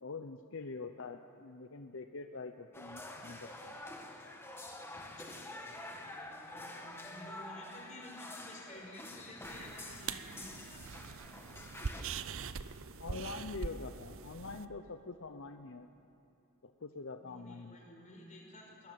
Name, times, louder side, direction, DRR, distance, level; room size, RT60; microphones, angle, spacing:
voice 1, 0.0-3.8 13.0-15.9 16.6-17.8, left 4 dB, 65° left, 7 dB, 0.8 m, -45 dB
sound 1, 2.7-12.0, left 1 dB, 10° left, 1.7 m, -48 dB
voice 2, 4.8-5.8 6.0-10.9 17.2-18.9, left 1 dB, 35° left, 0 dB, 5.4 m, -52 dB
sound 2, 9.4-14.7, right 5 dB, 65° right, 0.7 m, -43 dB
22.5 x 19.0 x 7.7 m, 2.9 s
head